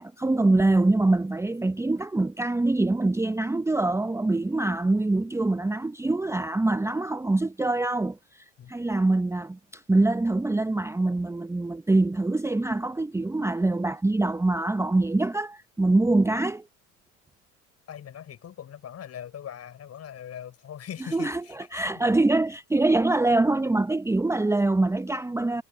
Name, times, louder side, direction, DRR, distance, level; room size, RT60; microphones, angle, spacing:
voice 1, 0.0-16.6 21.1-25.6, right 2 dB, 5° right, 1.0 m, -24 dB
voice 2, 17.9-22.1, left 9 dB, 40° left, 7.2 m, -41 dB
figure-of-eight pair, 65°, 37 cm